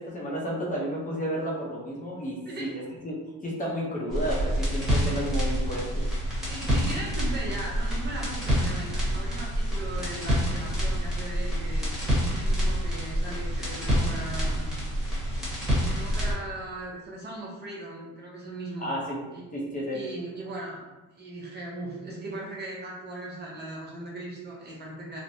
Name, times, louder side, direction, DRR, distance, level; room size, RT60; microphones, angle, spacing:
voice 1, 0.0-6.1 18.8-19.2 19.5-20.0, equal, 25° left, -4 dB, 0.6 m, -32 dB
sound 1, 4.1-16.3, equal, ahead, 1.1 m, -27 dB
voice 2, 6.4-11.9 12.2-14.8 15.8-18.9 19.3-19.5 19.9-20.8 21.2-25.2, right 2 dB, 30° right, -4 dB, 0.7 m, -38 dB
3.2 x 2.0 x 2.6 m, 1.1 s
cardioid pair, 130°, 33 cm